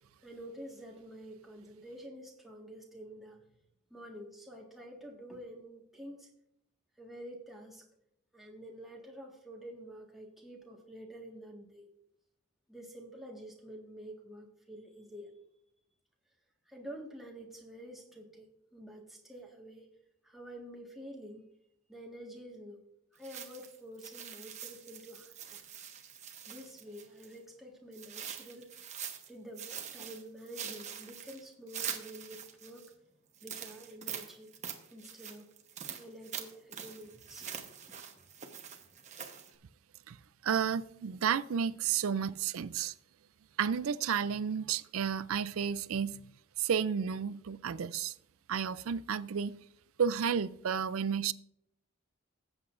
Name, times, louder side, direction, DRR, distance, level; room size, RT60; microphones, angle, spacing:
voice 1, 0.2-3.4 3.9-6.3 7.0-7.9 8.3-11.9 12.7-15.4 16.7-19.9 20.2-21.4 21.9-22.8 23.1-25.8 26.5-28.7 29.3-32.9 33.4-34.5 34.9-35.5 35.9-38.0 42.1-42.2 42.6-42.7, right 1 dB, ahead, 1.6 m, -49 dB
sound 1, 23.2-27.4 27.9-29.3 29.6-32.9 33.3-39.5, right 8 dB, 35° right, 1.0 m, -44 dB
voice 2, 40.4-42.9 43.6-46.2 46.6-48.1 48.5-49.6 50.0-51.3, right 7 dB, 70° right, 0.4 m, -32 dB
17.0 x 8.0 x 2.5 m
head